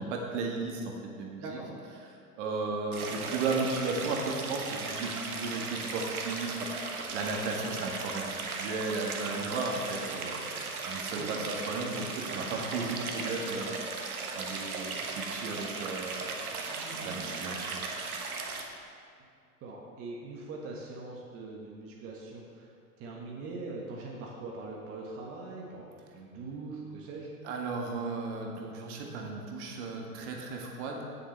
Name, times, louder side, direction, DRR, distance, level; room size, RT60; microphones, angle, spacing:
voice 1, 0.0-1.6 2.4-13.8 14.3-16.7 17.0-17.8 27.4-31.0, right 3 dB, 50° right, 1 dB, 1.7 m, -35 dB
voice 2, 1.4-1.7 11.1-11.3 19.6-22.7 23.0-25.9 26.1-27.3, right 3 dB, 30° right, -2 dB, 1.4 m, -42 dB
Stream, 2.9-18.6, right 4 dB, 70° right, 1.4 m, -37 dB
16.5 x 6.9 x 3.3 m, 2.3 s
figure-of-eight pair, 100°, 45 cm